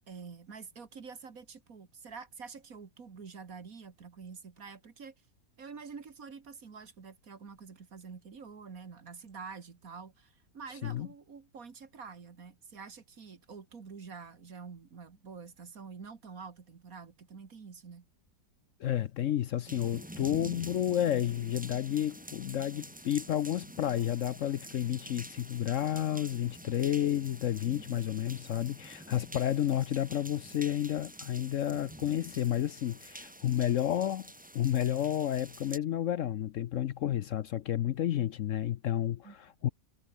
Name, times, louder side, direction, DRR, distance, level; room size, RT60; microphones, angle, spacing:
voice 1, 0.1-5.2 5.6-18.1 39.2-39.4, right 5 dB, 50° right, 2.3 m, -47 dB
voice 2, 18.8-34.3 34.5-39.7, left 11 dB, 70° left, 0.7 m, -31 dB
sound 1, 19.7-35.8, right 1 dB, 5° right, 1.5 m, -48 dB
omnidirectional pair, 1.9 m